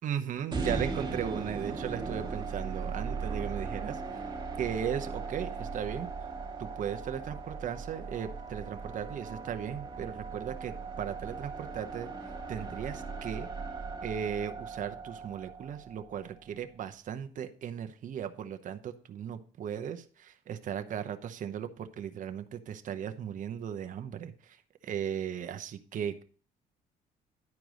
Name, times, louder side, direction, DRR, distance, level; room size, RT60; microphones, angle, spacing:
voice 1, 0.0-4.2 4.6-6.1 6.6-13.5 14.0-26.2, right 8 dB, 50° right, 8 dB, 0.9 m, -37 dB
sound 1, 0.5-16.7, right 4 dB, 30° right, 1.6 m, -38 dB
11.0 x 4.7 x 5.0 m, 0.41 s
cardioid pair, 110°, 17 cm